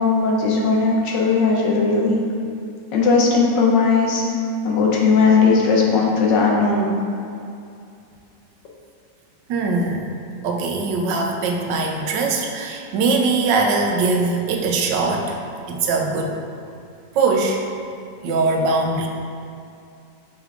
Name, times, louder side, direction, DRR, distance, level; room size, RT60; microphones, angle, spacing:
voice 1, 0.0-2.2 2.9-4.2 4.6-6.9, left 4 dB, 90° left, -1 dB, 1.5 m, -17 dB
voice 2, 9.5-10.1 10.4-15.3 15.7-16.4 17.1-17.6 18.2-19.1, right 3 dB, 85° right, 2 dB, 1.3 m, -21 dB
5.5 x 3.5 x 4.7 m, 2.5 s
omnidirectional pair, 1.9 m